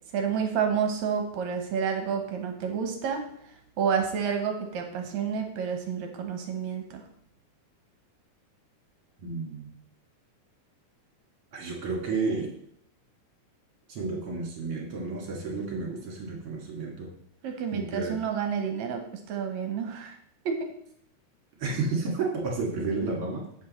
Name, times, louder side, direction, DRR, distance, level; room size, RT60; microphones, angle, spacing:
voice 1, 0.1-3.3 3.8-7.0 17.4-19.0 19.3-20.1 20.5-20.7, right 7 dB, 70° right, 4 dB, 2.1 m, -29 dB
voice 2, 9.2-9.8 11.5-12.5 13.9-17.1 17.7-18.2 21.6-23.4, right 3 dB, 50° right, -1 dB, 2.7 m, -31 dB
8.0 x 7.4 x 4.2 m, 0.71 s
omnidirectional pair, 3.6 m